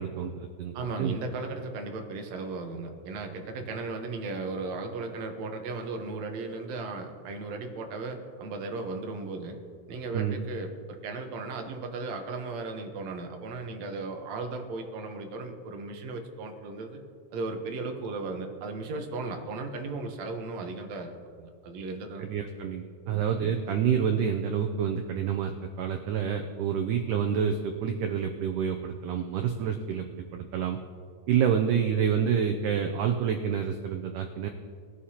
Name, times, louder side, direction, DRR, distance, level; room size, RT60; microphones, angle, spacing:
voice 1, 0.0-1.2 10.1-10.5 22.2-30.8 31.3-34.5, right 8 dB, 85° right, 5 dB, 1.8 m, -28 dB
voice 2, 0.7-9.6 9.9-17.0 17.3-22.3 23.1-23.2, right 3 dB, 65° right, 4 dB, 1.8 m, -36 dB
21.0 x 11.5 x 2.9 m, 2.1 s
omnidirectional pair, 4.4 m